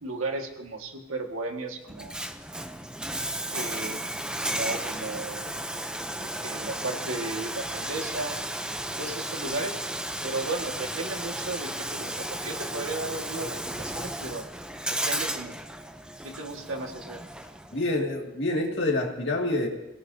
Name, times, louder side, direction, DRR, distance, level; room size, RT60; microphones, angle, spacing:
voice 1, 0.0-2.1 3.5-4.0 4.4-5.6 6.4-8.3 9.0-9.8 10.2-14.4 14.9-15.5 16.2-17.2, right 2 dB, 85° right, 3 dB, 1.9 m, -34 dB
Bathtub (filling or washing), 1.9-17.8, right 1 dB, 5° right, 0.6 m, -34 dB
voice 2, 17.7-19.7, left 2 dB, 55° left, 1 dB, 2.3 m, -27 dB
27.5 x 17.5 x 2.8 m, 0.95 s
head